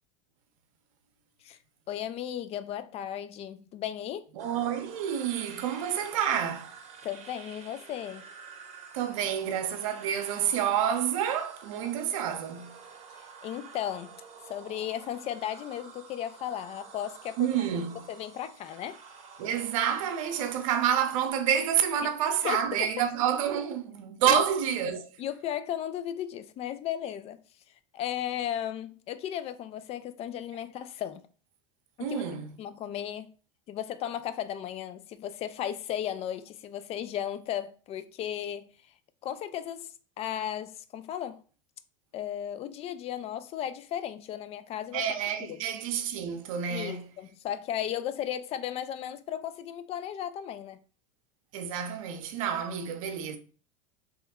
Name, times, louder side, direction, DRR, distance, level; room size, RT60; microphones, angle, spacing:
voice 1, 1.9-4.2 7.0-8.2 11.8-11.9 13.4-14.1 14.5-17.7 18.1-19.0 22.0-22.1 22.4-22.9 24.3-24.4 25.2-27.4 27.9-31.2 32.0-32.2 32.6-33.3 33.7-38.7 39.2-41.4 42.1-45.0 45.4-45.6 46.7-50.8, left 10 dB, 35° left, 0.4 m, -35 dB
sound 1, 4.4-21.3, right 6 dB, 40° right, 0.9 m, -49 dB
voice 2, 4.4-6.7 8.9-12.7 17.4-18.0 19.4-25.1 32.0-32.5 44.9-47.1 51.5-53.4, right 9 dB, 80° right, 0.6 m, -28 dB
3.0 x 2.1 x 3.5 m
supercardioid pair, 110°, 17 cm